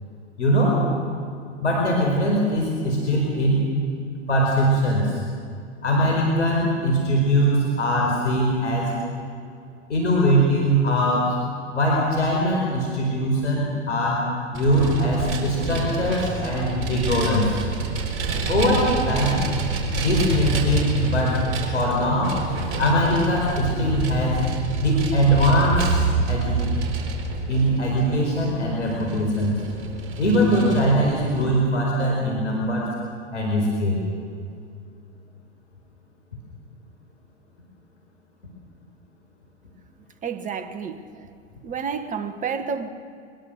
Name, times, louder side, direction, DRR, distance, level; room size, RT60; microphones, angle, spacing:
voice 1, 0.4-0.9 1.6-3.6 4.3-5.2 5.8-8.9 9.9-11.4 11.7-14.2 14.5-17.6 18.5-19.4 19.9-21.4 21.7-22.4 22.8-24.4 24.8-26.6 27.5-29.6 30.2-32.9 33.3-34.0, equal, 85° left, 4.7 m, -21 dB
Vehicle, 14.5-31.5, right 3 dB, 35° right, 4.6 m, -27 dB
voice 2, 40.2-41.2 41.6-42.9, right 6 dB, 20° right, 1.5 m, -30 dB
23.0 x 21.5 x 6.6 m
hypercardioid pair, 110°, 35 cm